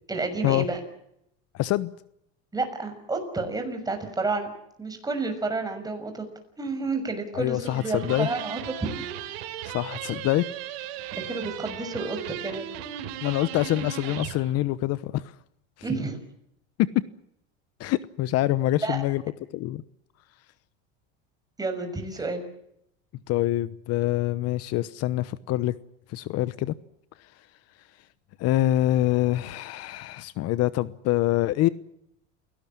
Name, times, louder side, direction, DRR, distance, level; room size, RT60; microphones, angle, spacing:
voice 1, 0.1-0.8 2.5-4.5 4.8-6.3 6.6-9.0 11.1-12.7 15.8-16.2 18.8-19.0 21.6-22.4, right 3 dB, 10° right, 6 dB, 6.3 m, -30 dB
voice 2, 1.5-1.9 7.3-8.3 9.6-10.5 13.2-15.3 16.8-17.0 17.8-19.2 19.5-19.8 23.3-25.7 26.1-26.7 28.4-31.7, left 15 dB, 55° left, 16 dB, 1.0 m, -25 dB
Laughter, 7.6-14.5, right 9 dB, 45° right, 7.4 m, -50 dB
sound 1, 8.0-14.4, right 11 dB, 80° right, 3.9 m, -36 dB
29.5 x 18.0 x 7.4 m, 0.77 s
supercardioid pair, 125°, 30 cm